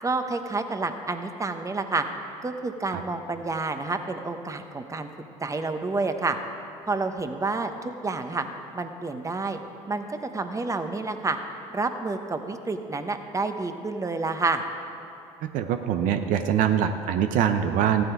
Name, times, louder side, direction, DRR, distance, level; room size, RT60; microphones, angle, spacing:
voice 1, 0.0-2.1 2.4-5.1 5.4-6.4 6.9-8.5 8.7-9.6 9.9-11.4 11.7-14.6, right 3 dB, 20° right, 7 dB, 1.1 m, -29 dB
voice 2, 15.4-18.0, right 9 dB, 70° right, 8 dB, 0.7 m, -24 dB
14.5 x 11.5 x 4.7 m, 2.7 s
supercardioid pair, 70°, 14 cm